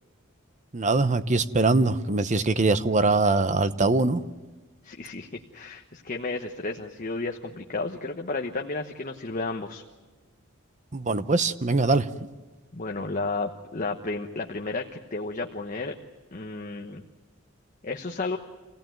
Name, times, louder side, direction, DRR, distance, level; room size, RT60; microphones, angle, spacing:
voice 1, 0.7-4.2 10.9-12.1, right 3 dB, 35° right, 12 dB, 0.9 m, -22 dB
voice 2, 4.8-5.3 5.5-9.8 12.7-15.9 16.3-17.0 17.8-18.4, left 3 dB, 40° left, 3 dB, 1.1 m, -32 dB
27.0 x 17.0 x 9.2 m, 1.3 s
head